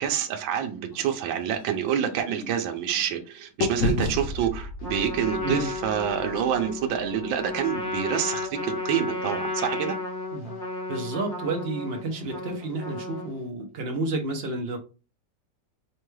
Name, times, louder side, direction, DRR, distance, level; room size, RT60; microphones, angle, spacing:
voice 1, 0.0-10.0 12.2-12.3, right 9 dB, 85° right, 5 dB, 1.4 m, -27 dB
sound 1, 0.9-3.2 3.6-7.6, left 3 dB, 60° left, 0.8 m, -33 dB
Trumpet, 4.8-13.5, left 2 dB, 75° left, 1.9 m, -33 dB
voice 2, 10.9-14.8, right 2 dB, 65° right, 2 dB, 0.6 m, -31 dB
5.4 x 2.2 x 3.1 m, 0.33 s
omnidirectional pair, 2.1 m